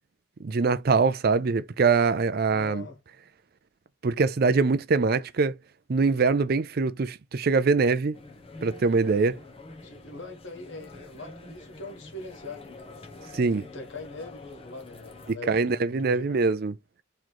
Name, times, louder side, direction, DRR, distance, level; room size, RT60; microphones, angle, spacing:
voice 1, 0.4-2.8 4.0-5.6 5.9-8.2 8.6-9.4 13.3-13.7 15.5-16.7, right 4 dB, 50° right, 0.4 m, -23 dB
voice 2, 2.5-3.0 9.8-13.0 13.6-16.4, left 2 dB, 65° left, 1.6 m, -42 dB
sound 1, 8.1-15.3, left 3 dB, 30° left, 0.9 m, -46 dB
3.8 x 3.2 x 4.5 m
head